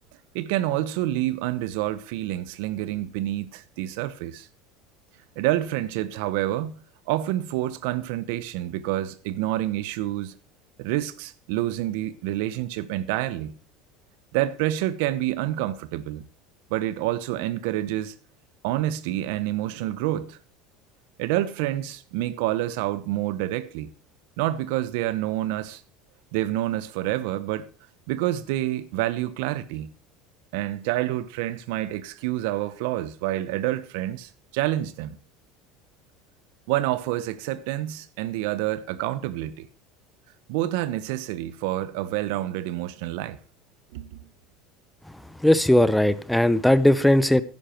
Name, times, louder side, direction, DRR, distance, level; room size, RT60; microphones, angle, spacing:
voice 1, 0.3-4.5 5.4-6.8 7.1-10.4 10.8-13.6 14.3-16.2 16.7-18.1 18.6-20.4 21.2-23.9 24.4-25.8 26.3-27.7 28.1-29.9 30.5-35.2 36.7-39.7 40.5-43.4 43.9-44.3, right 14 dB, 75° right, 0.9 m, -28 dB
voice 2, 45.4-47.4, left 1 dB, 5° left, 0.7 m, -18 dB
11.0 x 9.8 x 4.4 m
supercardioid pair, 115°, 0 cm